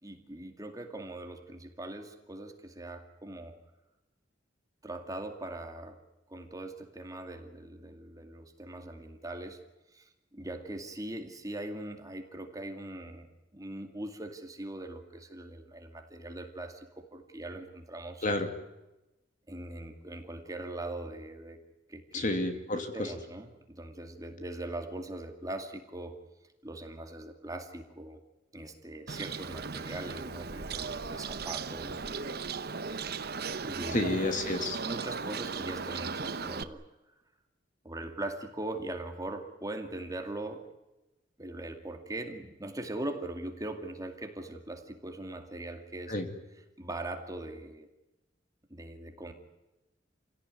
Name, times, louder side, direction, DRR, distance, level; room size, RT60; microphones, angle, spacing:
voice 1, 0.0-3.6 4.8-6.0 6.3-9.6 9.9-18.4 19.5-21.6 21.9-22.6 22.9-26.2 26.6-28.2 28.5-32.4 33.6-34.2 34.8-36.8 37.8-40.6 41.4-46.1 46.8-47.9 48.7-49.3, right 1 dB, 20° right, 5 dB, 2.3 m, -41 dB
voice 2, 22.1-23.1 33.9-34.8 46.1-46.3, left 2 dB, 45° left, 6 dB, 2.7 m, -30 dB
Bird, 29.1-36.6, right 5 dB, 55° right, 1.0 m, -37 dB
28.0 x 17.0 x 9.6 m, 1.0 s
head